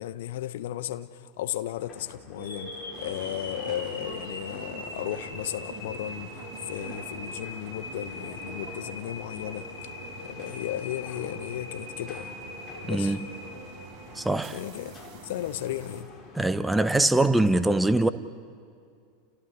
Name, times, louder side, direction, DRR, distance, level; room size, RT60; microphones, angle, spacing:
voice 1, 0.0-9.7 10.2-12.3 12.8-13.2 14.5-15.0 15.2-16.1, left 13 dB, 60° left, 0.9 m, -35 dB
sound 1, 1.8-16.5, left 4 dB, 30° left, 3.7 m, -49 dB
sound 2, 2.3-14.5, left 2 dB, 90° left, 5.5 m, -41 dB
sound 3, 2.9-16.0, right 6 dB, 40° right, 5.3 m, -46 dB
voice 2, 12.9-13.3 14.2-14.6 16.4-18.1, right 2 dB, 5° right, 1.0 m, -23 dB
30.0 x 29.5 x 4.3 m
figure-of-eight pair, 85°, 0 cm